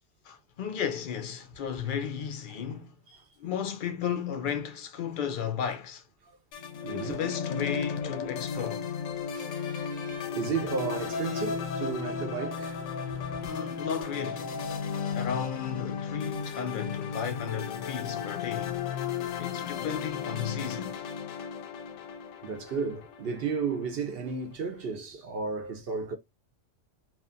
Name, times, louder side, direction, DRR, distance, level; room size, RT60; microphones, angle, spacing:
voice 1, 0.3-3.0 3.4-6.0 6.9-8.9 13.4-14.5 15.1-18.8 19.4-21.0, left 8 dB, 60° left, 0.5 m, -34 dB
sound 1, 6.5-23.9, left 6 dB, 85° left, 0.9 m, -35 dB
voice 2, 6.8-7.2 8.6-8.7 9.3-9.5 10.3-12.8 13.1-13.3 22.4-26.2, right 5 dB, 60° right, 0.7 m, -33 dB
Trumpet, 8.7-14.5, right 1 dB, 5° left, 0.6 m, -54 dB
2.8 x 2.3 x 2.4 m
omnidirectional pair, 1.3 m